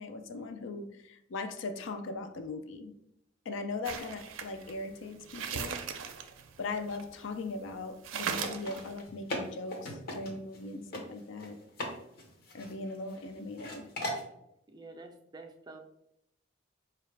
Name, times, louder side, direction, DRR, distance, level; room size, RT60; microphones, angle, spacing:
voice 1, 0.0-2.9 3.5-5.8 6.6-11.6 12.5-13.9, left 3 dB, 70° left, 0.4 m, -39 dB
sound 1, 3.8-7.4 7.7-7.8 8.0-9.0, right 7 dB, 85° right, 0.4 m, -38 dB
sound 2, 8.3-10.6 10.9-11.0 11.4-11.9 12.2-13.2 13.6-14.2, left 1 dB, 50° left, 0.8 m, -38 dB
voice 2, 14.7-15.8, right 3 dB, 20° right, 0.4 m, -48 dB
4.6 x 2.3 x 3.2 m
head